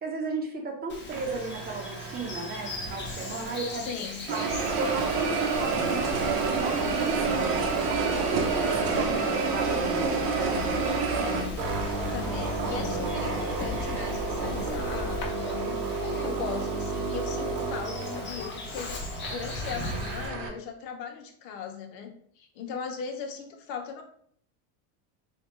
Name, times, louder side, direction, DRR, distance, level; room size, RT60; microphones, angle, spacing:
voice 1, 0.0-3.9 4.3-4.5 4.8-9.1 9.5-11.5, right 3 dB, 20° right, 2 dB, 0.8 m, -35 dB
Bird vocalization bird call bird song, 0.9-20.3, left 2 dB, 25° left, 0.7 m, -40 dB
sound 1, 1.1-3.9 4.3-20.5, right 4 dB, 70° right, 0.9 m, -30 dB
voice 2, 3.7-4.2 8.9-9.4 12.1-24.0, left 6 dB, 80° left, 3 dB, 1.0 m, -38 dB
sound 2, 5.5-15.3, left 5 dB, 40° left, 1.3 m, -39 dB
3.4 x 2.3 x 4.2 m, 0.62 s
supercardioid pair, 120°, 49 cm